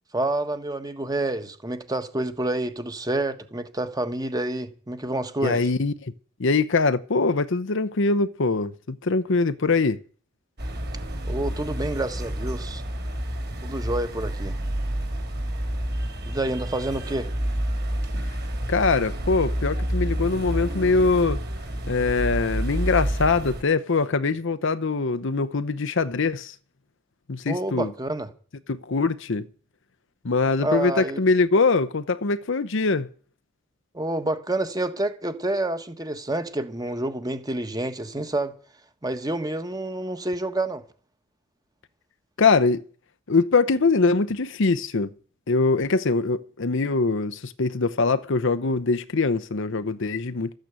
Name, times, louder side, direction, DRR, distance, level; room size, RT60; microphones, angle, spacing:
voice 1, 0.1-5.6 11.3-12.8 13.6-14.6 16.2-17.3 27.5-28.3 30.6-31.2 33.9-38.5 39.0-40.8, right 2 dB, 20° right, 1.4 m, -28 dB
voice 2, 5.4-6.1 6.4-10.0 18.7-21.4 21.9-26.5 27.3-27.9 28.7-29.5 30.2-33.1 42.4-42.8 43.3-45.1 45.5-50.5, left 4 dB, 65° left, 0.8 m, -23 dB
sound 1, 10.6-23.6, equal, 55° right, 3.1 m, -29 dB
13.5 x 9.0 x 8.2 m
head